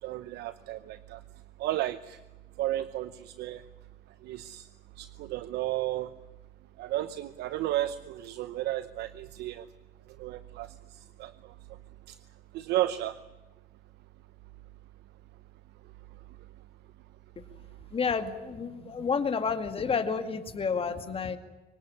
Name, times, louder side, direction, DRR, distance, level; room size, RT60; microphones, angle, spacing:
voice 1, 0.0-1.2 1.6-2.2 2.6-3.6 4.2-4.7 5.0-6.1 6.8-9.7 10.2-11.5 12.1-12.2 12.5-13.2, right 14 dB, 80° right, 13 dB, 0.9 m, -33 dB
voice 2, 17.9-21.4, left 5 dB, 35° left, 8 dB, 2.2 m, -30 dB
24.5 x 18.5 x 9.8 m, 1.1 s
cardioid pair, 110°, 17 cm